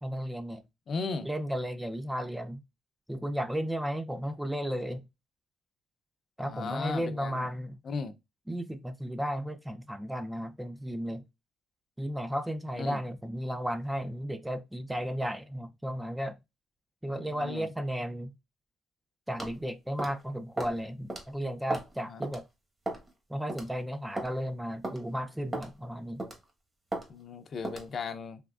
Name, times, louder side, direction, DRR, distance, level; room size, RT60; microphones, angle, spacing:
voice 1, 0.0-0.6 1.2-2.6 3.1-5.0 6.4-7.8 8.5-11.2 12.0-16.4 17.0-18.3 19.3-22.5 23.3-26.2, equal, 5° right, 0.4 m, -34 dB
voice 2, 0.9-1.3 6.4-7.5 7.9-8.1 12.8-13.0 17.2-17.7 22.1-22.2 27.1-28.4, left 4 dB, 50° left, 0.5 m, -36 dB
sound 1, 19.4-19.6 20.0-20.2 20.6-20.8 21.1-21.2 21.7-21.9 22.2-22.4 22.9-23.1 23.5-23.7 24.2-24.3 24.8-25.0 25.5-25.7 26.2-26.4 26.9-27.1 27.6-27.9, right 1 dB, 25° right, 1.1 m, -35 dB
3.5 x 2.9 x 2.4 m
cardioid pair, 90°, 0 cm